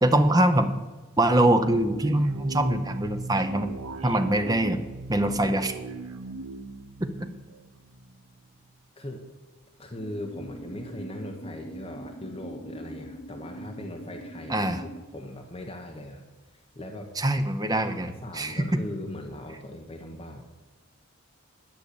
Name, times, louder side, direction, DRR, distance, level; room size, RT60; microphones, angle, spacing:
voice 1, 0.0-0.7 1.2-3.7 4.0-4.8 5.1-5.8 7.0-7.3 14.5-14.8 17.2-18.7, right 1 dB, 15° right, 7 dB, 0.6 m, -23 dB
sound 1, 1.2-8.4, right 3 dB, 85° right, 0.7 m, -39 dB
voice 2, 9.8-17.1 17.7-20.4, left 1 dB, 25° left, 1 dB, 0.9 m, -39 dB
sound 2, 10.0-15.0, right 1 dB, 45° left, 4.3 m, -42 dB
11.0 x 5.6 x 8.4 m, 1.3 s
head